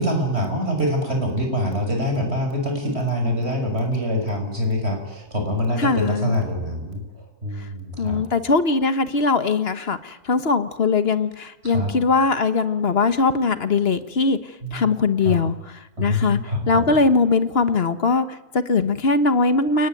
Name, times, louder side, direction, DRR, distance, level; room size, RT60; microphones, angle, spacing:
voice 1, 0.0-8.2 11.6-11.9 14.6-14.8 15.2-15.4 16.0-16.8, equal, 40° right, 4 dB, 6.2 m, -25 dB
voice 2, 5.8-6.3 7.6-7.7 8.0-16.4 16.7-19.9, left 4 dB, 40° left, 11 dB, 1.4 m, -21 dB
29.0 x 20.0 x 9.2 m, 0.94 s
omnidirectional pair, 1.6 m